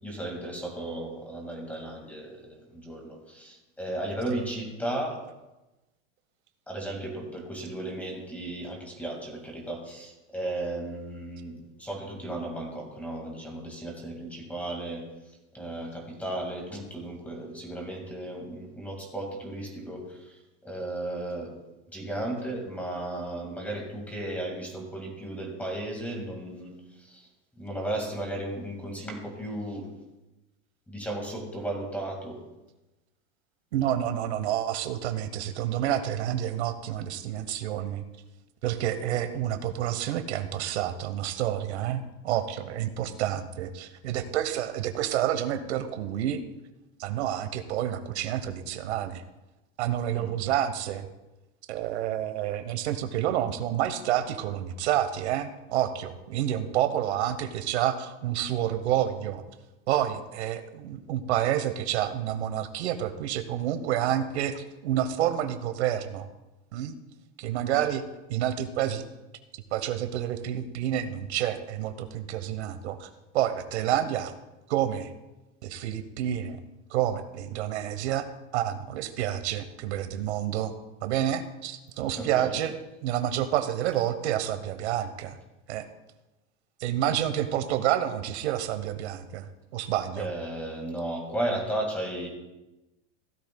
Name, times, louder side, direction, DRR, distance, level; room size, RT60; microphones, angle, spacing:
voice 1, 0.0-5.2 6.7-15.0 15.5-21.5 21.9-27.3 27.6-29.9 30.9-32.4 50.2-50.3 82.2-82.5 90.2-92.3, right 1 dB, 5° left, 1 dB, 1.9 m, -35 dB
voice 2, 33.7-38.0 38.6-46.4 47.0-49.2 49.8-51.1 51.7-59.4 59.9-66.3 66.7-67.0 67.4-68.0 68.3-69.1 69.7-74.3 74.7-75.1 75.6-76.6 76.9-78.2 78.5-80.7 81.0-82.7 83.0-85.4 85.7-85.9 86.8-90.3, right 11 dB, 75° right, 9 dB, 1.1 m, -29 dB
16.5 x 12.0 x 2.2 m, 1.0 s
supercardioid pair, 170°, 34 cm